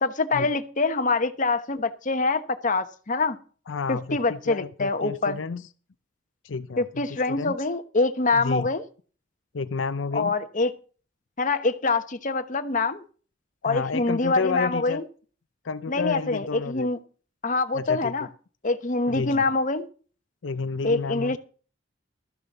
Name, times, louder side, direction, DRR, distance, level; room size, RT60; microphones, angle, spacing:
voice 1, 0.0-3.4 3.9-5.4 6.8-8.8 10.1-10.7 11.4-13.0 13.6-15.0 15.9-17.0 17.4-18.3 18.6-19.9 20.8-21.4, left 3 dB, 45° left, 9 dB, 1.1 m, -25 dB
voice 2, 3.7-5.7 6.4-6.8 7.1-7.5 8.3-8.7 9.5-10.3 13.6-15.0 15.6-16.9 17.7-18.1 19.1-19.4 20.4-21.4, left 4 dB, 80° left, 11 dB, 0.6 m, -30 dB
13.0 x 6.9 x 6.7 m, 0.39 s
head